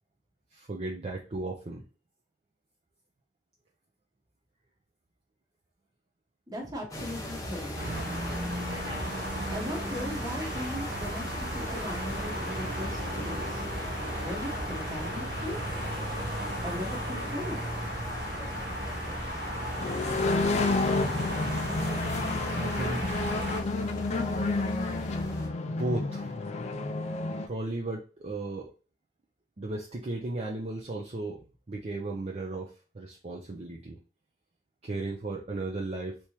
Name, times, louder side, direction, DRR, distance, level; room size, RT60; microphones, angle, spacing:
voice 1, 0.5-1.8 16.8-16.9 19.0-19.1 22.5-23.1 25.8-26.3 27.5-28.7 29.6-31.4 31.7-34.0 34.8-36.3, right 2 dB, 35° right, -1 dB, 0.5 m, -35 dB
voice 2, 6.5-8.1 9.5-13.6 14.2-15.8 16.6-17.6, equal, 20° right, 0 dB, 1.0 m, -38 dB
sound 1, 6.9-25.5, equal, 20° left, 0.8 m, -39 dB
sound 2, 7.7-23.6, equal, 65° right, 1.0 m, -35 dB
sound 3, 19.8-27.5, left 3 dB, 35° left, 0.3 m, -30 dB
3.4 x 2.9 x 2.9 m, 0.35 s
head